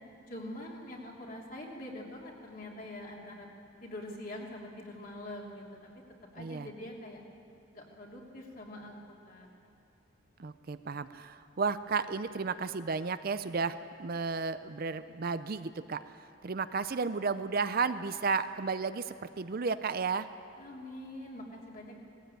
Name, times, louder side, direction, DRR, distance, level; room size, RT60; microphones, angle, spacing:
voice 1, 0.3-3.5 3.8-5.9 6.3-7.2 7.7-9.5 20.6-22.0, left 1 dB, 40° left, -1 dB, 3.1 m, -44 dB
voice 2, 6.4-6.7 10.4-16.0 16.4-20.3, right 4 dB, 45° right, 12 dB, 0.5 m, -33 dB
19.0 x 15.5 x 9.0 m, 2.8 s
head